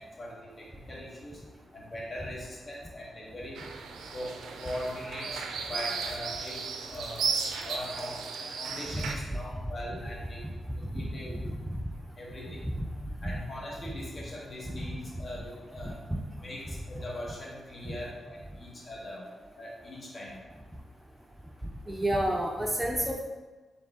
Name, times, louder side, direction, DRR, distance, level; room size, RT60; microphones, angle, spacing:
voice 1, 0.0-1.4 1.7-3.6 4.1-7.3 7.6-8.2 8.6-10.4 10.7-11.4 12.2-12.7 13.2-16.0 16.4-19.3 19.5-20.4, left 1 dB, 45° left, -4 dB, 1.4 m, -41 dB
sound 1, 3.6-9.1, right 5 dB, 85° right, 0.3 m, -35 dB
voice 2, 21.9-23.2, right 1 dB, 10° right, 0 dB, 0.6 m, -29 dB
3.6 x 3.3 x 3.6 m, 1.3 s
supercardioid pair, 50°, 0 cm